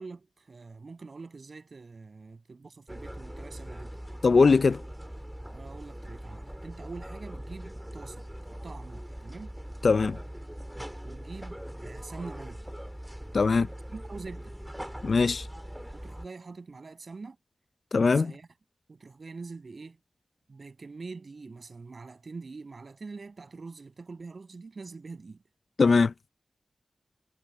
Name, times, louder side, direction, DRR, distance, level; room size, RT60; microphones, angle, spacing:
voice 1, 0.0-4.0 5.5-9.5 11.0-12.7 13.9-14.6 15.9-17.4 18.1-18.5 18.9-20.0 20.5-25.4, right 4 dB, 60° right, 6.8 m, -44 dB
sound 1, 2.9-16.3, equal, 5° right, 2.2 m, -41 dB
voice 2, 4.2-4.8 9.8-10.2 13.3-13.7 15.0-15.5 17.9-18.3 25.8-26.1, left 4 dB, 70° left, 0.4 m, -21 dB
wide cardioid pair, 60°, 0 cm